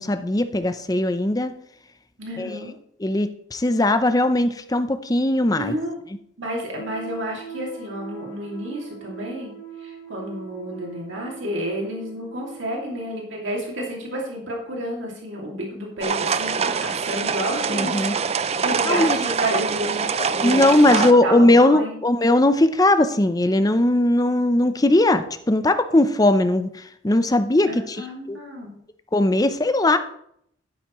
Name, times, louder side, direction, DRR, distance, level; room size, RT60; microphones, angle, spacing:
voice 1, 0.0-1.5 2.4-2.6 3.0-5.7 17.7-18.1 18.9-19.2 20.4-26.7 27.0-28.0 28.3-28.4 29.1-30.0, left 1 dB, 20° left, 10 dB, 0.6 m, -19 dB
voice 2, 2.2-2.7 5.6-6.0 6.4-9.5 9.8-22.0 27.7-28.7, right 1 dB, 85° right, -1 dB, 2.4 m, -30 dB
sound 1, 6.8-13.1, right 8 dB, 55° left, 2.1 m, -40 dB
sound 2, 16.0-21.1, right 6 dB, 35° right, 0.4 m, -24 dB
12.0 x 9.8 x 3.1 m, 0.70 s
head